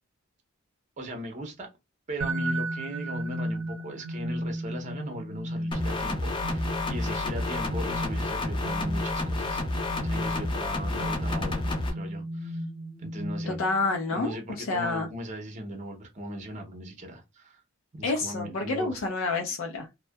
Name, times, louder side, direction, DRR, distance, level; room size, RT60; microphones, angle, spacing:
voice 1, 1.0-1.7 2.1-12.6 13.0-13.6 14.1-17.6 17.9-19.0, right 1 dB, 35° right, 0.6 m, -39 dB
sound 1, 2.2-13.9, equal, 75° right, 0.6 m, -34 dB
sound 2, 5.7-11.9, left 2 dB, 25° left, 0.5 m, -30 dB
voice 2, 13.5-15.1 18.0-19.9, left 3 dB, 80° left, 0.4 m, -29 dB
2.6 x 2.1 x 2.2 m
head